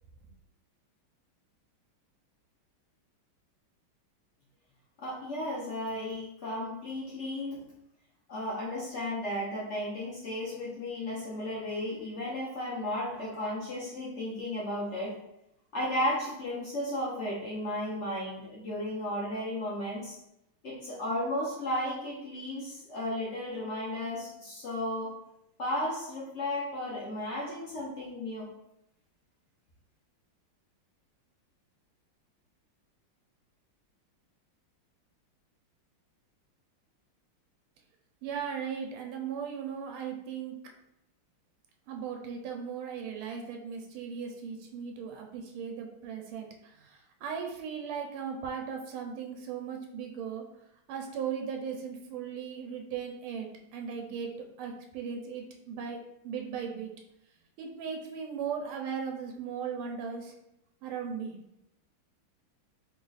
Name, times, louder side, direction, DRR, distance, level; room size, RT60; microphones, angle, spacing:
voice 1, 5.0-7.7 8.3-15.1 15.7-20.2 20.6-25.1 25.6-28.5, left 1 dB, 65° left, -6 dB, 0.7 m, -34 dB
voice 2, 38.2-40.6 41.9-50.4 50.9-54.3 54.6-56.0 56.2-56.9 57.6-60.3 60.8-61.4, right 7 dB, 80° right, 2 dB, 1.5 m, -37 dB
3.6 x 2.4 x 3.9 m, 0.82 s
omnidirectional pair, 2.4 m